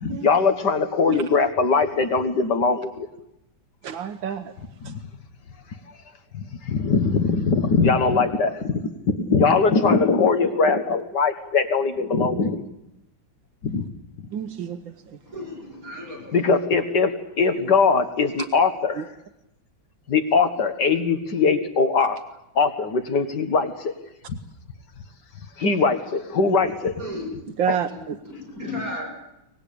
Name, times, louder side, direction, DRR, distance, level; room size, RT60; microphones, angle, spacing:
voice 1, 0.0-3.1 6.7-8.8 9.1-12.6 13.6-13.8 16.3-19.0 20.1-22.2 22.6-23.7 25.6-26.9 27.7-27.8, left 4 dB, 60° left, 9 dB, 2.1 m, -21 dB
voice 2, 3.8-4.5 14.3-14.8 19.0-19.1 27.6-28.2, right 8 dB, 80° right, 9 dB, 1.8 m, -28 dB
voice 3, 15.3-16.4 27.0-27.3 27.9-28.0 28.2-29.1, left 1 dB, 45° right, 0 dB, 7.4 m, -34 dB
24.0 x 19.5 x 8.6 m, 0.86 s
omnidirectional pair, 2.1 m